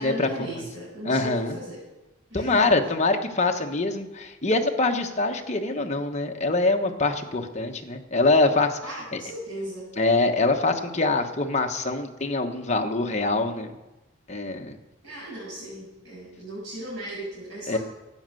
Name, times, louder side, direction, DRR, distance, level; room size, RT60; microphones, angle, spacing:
voice 1, 0.0-1.8 2.3-2.6 8.8-9.9 15.0-17.8, right 1 dB, 60° right, -8 dB, 6.6 m, -37 dB
voice 2, 1.0-1.6 2.3-8.8 9.1-9.2 10.0-13.7 14.3-14.8 17.7-17.8, left 3 dB, 30° left, 4 dB, 1.1 m, -24 dB
13.0 x 9.3 x 7.7 m, 1.0 s
head